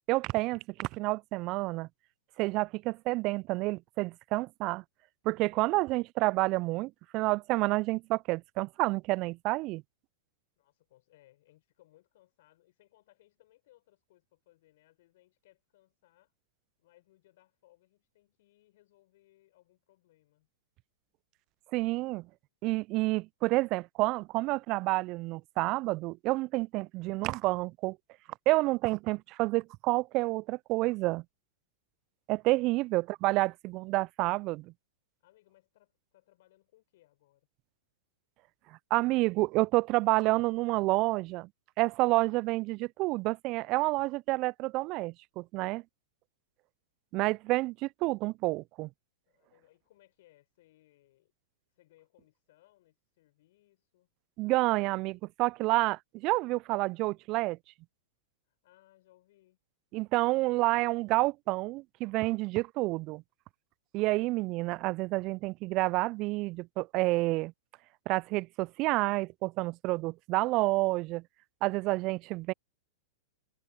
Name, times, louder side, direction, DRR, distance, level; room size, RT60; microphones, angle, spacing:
voice 1, 0.1-1.9 2.4-4.8 5.2-9.8 21.7-22.3 22.6-28.0 28.5-31.2 32.3-34.7 38.9-41.5 41.8-45.8 47.1-48.9 54.4-57.6 59.9-63.2 63.9-67.5 68.1-71.2 71.6-72.5, right 21 dB, 45° right, 0.3 m, -29 dB
voice 2, 10.6-16.3 16.8-20.5 32.6-32.9 35.2-37.5 49.3-51.3 51.7-54.1 58.5-59.6, left 16 dB, 60° left, 6.3 m, -65 dB
hypercardioid pair, 105°, 0 cm